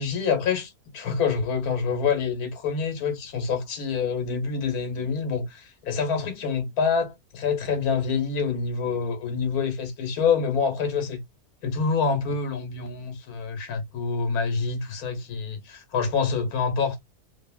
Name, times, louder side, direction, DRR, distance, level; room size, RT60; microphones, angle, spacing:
voice 1, 0.0-11.2 11.6-17.0, left 5 dB, 75° left, 1.3 m, -26 dB
2.8 x 2.7 x 2.2 m
omnidirectional pair, 1.6 m